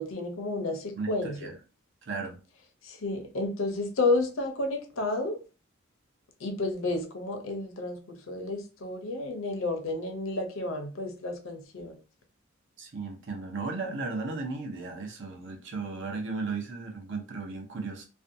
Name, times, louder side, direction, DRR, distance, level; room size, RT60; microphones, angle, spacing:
voice 1, 0.0-1.5 2.8-5.4 6.4-12.0, left 2 dB, 70° left, 0.6 m, -31 dB
voice 2, 0.9-1.5 2.0-2.4 12.8-18.1, right 3 dB, 60° right, 0.6 m, -35 dB
2.5 x 2.2 x 2.6 m
head